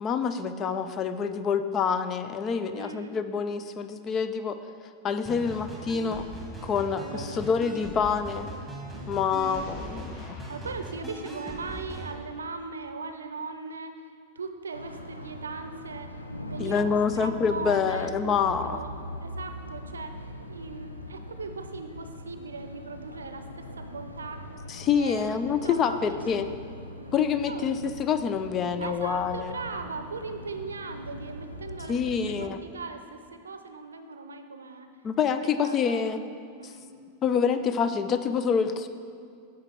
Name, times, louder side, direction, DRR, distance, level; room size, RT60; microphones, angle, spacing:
voice 1, 0.0-4.6 5.0-6.3 6.6-8.5 9.1-10.4 16.6-18.8 24.7-26.5 27.1-29.6 31.9-32.6 35.0-36.2 36.6-36.7 37.2-38.9, left 6 dB, 30° left, 10 dB, 0.4 m, -27 dB
voice 2, 2.7-3.3 5.3-5.6 7.0-7.4 7.8-9.2 10.5-14.0 14.4-20.2 20.5-24.5 24.9-27.7 28.8-32.0 32.3-34.9 35.3-36.2 36.6-37.1, right 4 dB, 70° right, 8 dB, 0.6 m, -39 dB
sound 1, 5.2-12.1, right 1 dB, ahead, 2.1 m, -40 dB
Boom, 9.4-12.3, left 2 dB, 50° left, 1.5 m, -46 dB
sound 2, 14.7-32.5, equal, 85° left, 0.6 m, -41 dB
8.7 x 6.5 x 4.4 m, 2.3 s
figure-of-eight pair, 90°, 0 cm